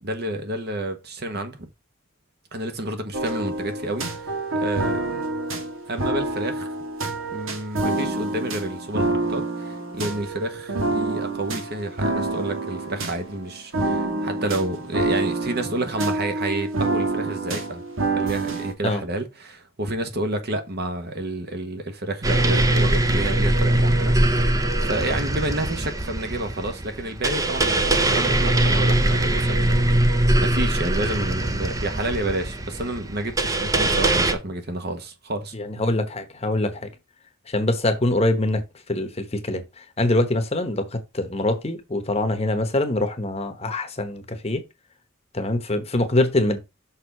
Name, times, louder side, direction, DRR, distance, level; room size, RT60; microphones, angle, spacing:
voice 1, 0.0-1.7 2.5-5.3 5.9-6.7 7.3-17.8 18.1-24.2 24.5-35.5, right 2 dB, 50° right, 1.3 m, -30 dB
sound 1, 3.1-18.7, right 2 dB, 75° right, 1.7 m, -27 dB
sound 2, 22.2-34.3, right 1 dB, 15° right, 0.7 m, -21 dB
voice 2, 35.5-36.9 37.5-38.6 38.9-39.6 40.0-44.6 45.3-46.6, left 1 dB, 30° left, 1.1 m, -24 dB
6.4 x 3.7 x 6.0 m
head